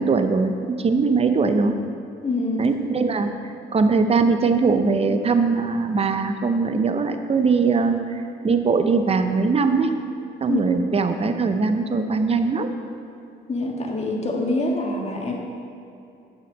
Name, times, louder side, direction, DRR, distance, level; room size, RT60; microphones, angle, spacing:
voice 1, 0.0-1.8 2.6-3.3 3.7-9.9 10.4-12.7, right 4 dB, 30° right, 8 dB, 0.7 m, -21 dB
voice 2, 2.2-2.6 10.5-10.6 13.5-15.4, left 2 dB, 35° left, 0 dB, 1.6 m, -25 dB
9.5 x 7.0 x 5.3 m, 2.6 s
cardioid pair, 90°, 20 cm